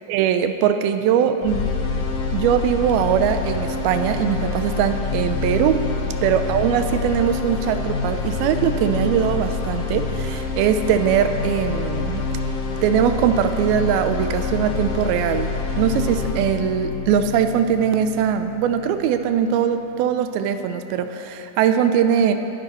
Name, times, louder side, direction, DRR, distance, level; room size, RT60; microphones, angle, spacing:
voice 1, 0.1-1.7 2.3-5.9 6.2-12.2 12.8-22.3, right 8 dB, 80° right, 8 dB, 2.4 m, -21 dB
sound 1, 1.4-19.4, left 4 dB, 65° left, 2.3 m, -27 dB
20.0 x 10.5 x 4.2 m, 2.8 s
omnidirectional pair, 4.6 m